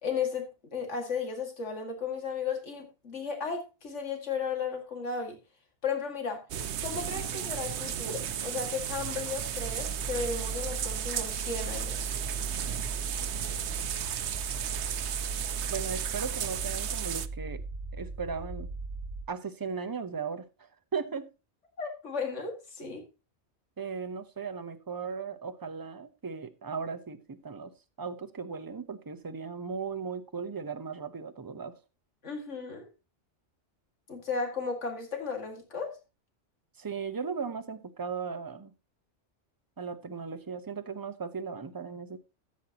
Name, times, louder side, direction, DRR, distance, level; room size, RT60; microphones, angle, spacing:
voice 1, 0.0-5.4 5.8-6.5 6.8-12.1 21.8-23.1 32.2-32.9 34.1-36.0, left 5 dB, 75° left, 2.4 m, -35 dB
sound 1, 6.5-17.3, right 9 dB, 70° right, 0.9 m, -34 dB
sound 2, 9.2-19.2, right 3 dB, 85° right, 1.6 m, -38 dB
voice 2, 15.7-17.6 17.9-18.7 19.3-20.4 20.9-21.3 23.8-27.7 28.0-31.7 36.8-38.7 39.8-42.2, right 5 dB, 20° right, 0.6 m, -37 dB
14.5 x 8.4 x 2.9 m
omnidirectional pair, 1.2 m